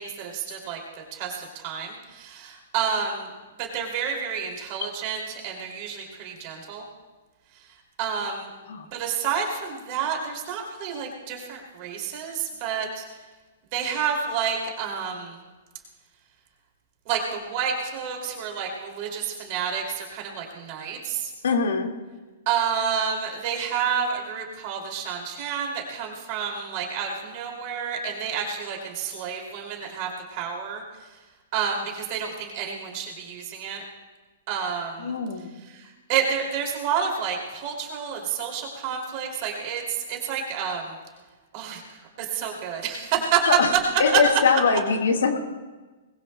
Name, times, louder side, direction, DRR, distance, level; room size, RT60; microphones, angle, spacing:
voice 1, 0.0-3.3 3.6-6.8 8.0-8.5 8.9-13.0 13.7-15.4 17.1-21.3 22.5-30.8 31.5-33.8 34.5-35.1 35.7-41.0 41.5-41.8 42.2-43.4 44.1-44.2, right 7 dB, 30° right, 0 dB, 2.5 m, -29 dB
voice 2, 21.4-21.9 35.0-35.5 43.5-43.7 44.0-45.4, left 5 dB, 90° left, 3 dB, 1.9 m, -22 dB
23.5 x 20.5 x 2.2 m, 1.3 s
hypercardioid pair, 175°, 0 cm